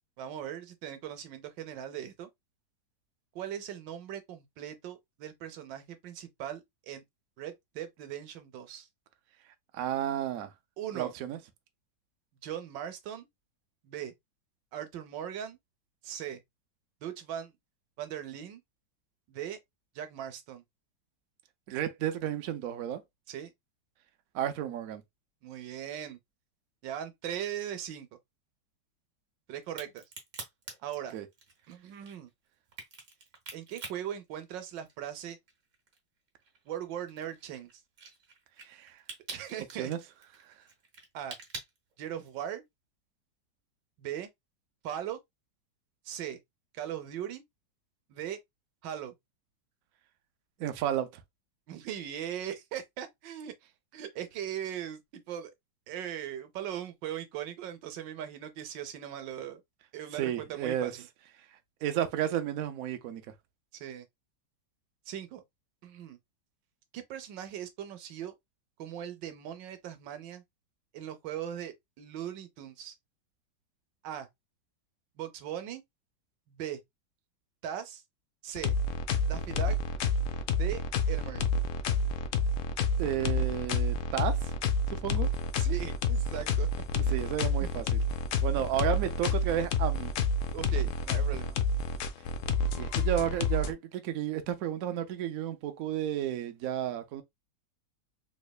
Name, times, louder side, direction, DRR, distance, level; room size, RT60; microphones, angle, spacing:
voice 1, 0.2-2.3 3.3-7.0 7.4-8.9 10.8-11.1 12.4-13.3 13.8-14.1 14.7-15.6 16.0-16.4 17.0-17.5 18.0-18.6 19.3-19.6 19.9-20.6 23.3-23.5 25.4-26.2 26.8-28.1 29.5-30.0 30.8-31.2 31.7-32.3 33.5-35.4 36.7-37.7 39.3-39.9 41.1-41.4 42.0-42.6 44.0-44.3 44.8-45.2 46.0-46.4 46.7-47.4 48.1-48.4 48.8-49.1 51.7-53.5 53.9-55.5 55.9-59.6 59.9-61.1 63.7-64.1 65.1-65.4 65.8-66.2 66.9-68.3 68.8-70.4 70.9-72.9 74.0-74.3 75.2-75.8 76.5-76.8 77.6-78.0 78.4-78.7 79.3-79.8 80.5-81.4 85.6-86.7 87.0-87.2 87.6-87.7 90.5-91.6, right 10 dB, 85° right, 1.4 m, -39 dB
voice 2, 9.7-10.5 10.9-11.4 21.7-23.0 24.3-25.0 31.1-31.3 38.7-39.0 39.8-40.0 50.6-51.2 60.1-60.9 61.8-63.2 83.0-84.4 84.9-85.3 87.1-87.8 88.4-90.1 92.7-97.2, right 11 dB, 70° right, 0.9 m, -32 dB
Crack, 29.6-35.1 35.5-42.5, right 4 dB, 50° right, 1.2 m, -46 dB
sound 1, 78.6-93.7, left 3 dB, 85° left, 0.7 m, -29 dB
3.5 x 3.2 x 2.2 m
omnidirectional pair, 1.9 m